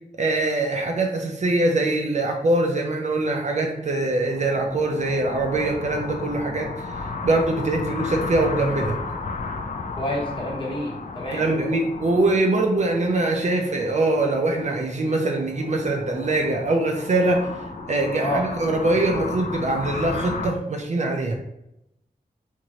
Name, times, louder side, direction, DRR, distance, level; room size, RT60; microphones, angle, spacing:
voice 1, 0.2-6.9 7.2-9.0 11.3-17.5 17.9-21.4, right 2 dB, 45° right, 2 dB, 0.4 m, -23 dB
sound 1, 3.8-20.5, left 3 dB, 50° left, 0.4 m, -34 dB
voice 2, 10.0-11.4 18.2-18.4, equal, 30° left, -3 dB, 0.8 m, -28 dB
3.0 x 2.5 x 2.7 m, 0.85 s
wide cardioid pair, 110°, 16 cm